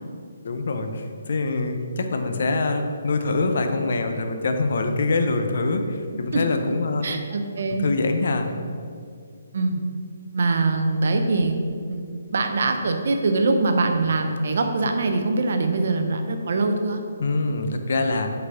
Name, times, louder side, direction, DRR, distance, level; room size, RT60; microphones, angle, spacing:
voice 1, 0.4-7.0 7.7-8.5 17.2-18.3, left 3 dB, 45° left, 6 dB, 0.5 m, -24 dB
voice 2, 7.0-7.8 9.5-9.8 10.3-11.6 11.9-12.1 12.3-17.0, right 3 dB, 45° right, 5 dB, 0.6 m, -23 dB
5.4 x 4.1 x 5.5 m, 2.3 s
hypercardioid pair, 180°, 0 cm